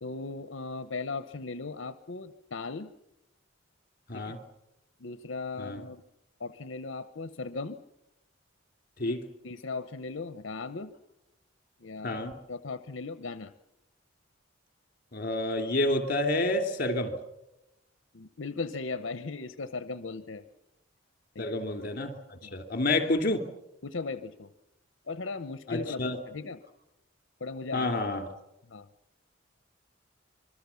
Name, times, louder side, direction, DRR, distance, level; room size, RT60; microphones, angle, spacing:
voice 1, 0.0-2.9 4.1-4.4 5.0-6.0 6.4-7.8 9.4-10.9 11.8-12.2 12.5-13.5 18.1-20.4 21.3-21.5 22.4-22.6 23.8-24.5 25.1-26.6 27.4-27.9 28.7-28.9, left 3 dB, 70° left, 0.8 m, -37 dB
voice 2, 15.1-17.2 21.4-23.4 25.7-26.2 27.7-28.2, left 2 dB, 45° left, 2.8 m, -29 dB
26.0 x 23.0 x 7.1 m
head